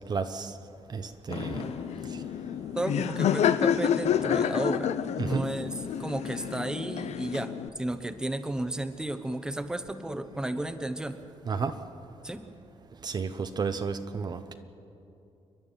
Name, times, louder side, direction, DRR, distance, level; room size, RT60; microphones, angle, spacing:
voice 1, 0.1-0.5 0.9-1.6 5.2-5.5 11.5-11.7 13.0-14.6, right 5 dB, 40° right, 8 dB, 0.8 m, -32 dB
Fireworks, 1.3-2.6 4.0-5.6, left 5 dB, 65° left, 1.4 m, -40 dB
Laughter, 1.4-7.7, left 8 dB, 80° left, 0.7 m, -29 dB
voice 2, 2.7-4.9 5.2-5.7 6.0-11.2 12.2-12.4, right 1 dB, 5° right, 8 dB, 1.0 m, -33 dB
29.5 x 11.5 x 9.2 m, 2.8 s
wide cardioid pair, 160°, 11 cm